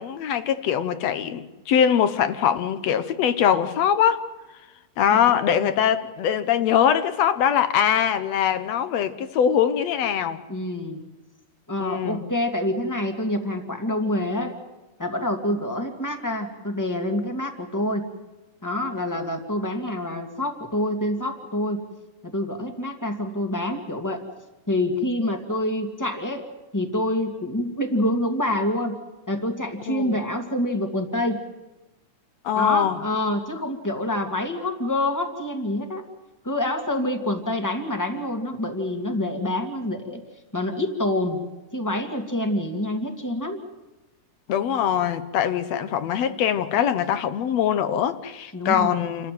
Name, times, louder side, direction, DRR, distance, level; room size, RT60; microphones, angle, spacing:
voice 1, 0.0-4.2 5.0-10.4 11.8-12.2 29.9-30.2 32.4-33.0 44.5-49.3, left 8 dB, 65° left, 2.0 m, -22 dB
voice 2, 10.5-11.0 11.7-14.6 15.0-18.1 18.6-21.8 22.2-24.2 24.7-26.4 26.7-29.0 29.3-31.4 32.6-36.0 36.4-40.2 40.5-41.4 41.7-43.6 48.5-49.0, left 1 dB, 5° left, 2.0 m, -26 dB
29.0 x 14.0 x 9.5 m
omnidirectional pair, 3.6 m